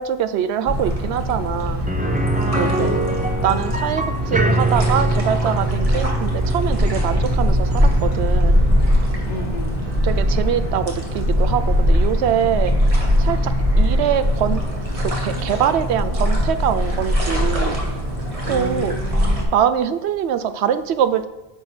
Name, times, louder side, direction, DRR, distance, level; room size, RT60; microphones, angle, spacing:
voice 1, 0.0-1.9 2.6-3.0 3.4-8.6 10.0-12.7 13.2-14.6 15.0-17.8 18.5-19.0 19.5-21.3, right 9 dB, 85° right, 12 dB, 0.8 m, -23 dB
sound 1, 0.7-19.4, equal, 35° right, 1.5 m, -21 dB
sound 2, 1.9-11.6 12.0-12.1 14.5-14.6, right 2 dB, 10° right, 0.5 m, -25 dB
voice 2, 2.5-3.1 9.2-9.8 18.4-19.5, left 1 dB, 45° left, 4 dB, 1.0 m, -31 dB
9.8 x 5.7 x 4.3 m, 0.98 s
omnidirectional pair, 1.1 m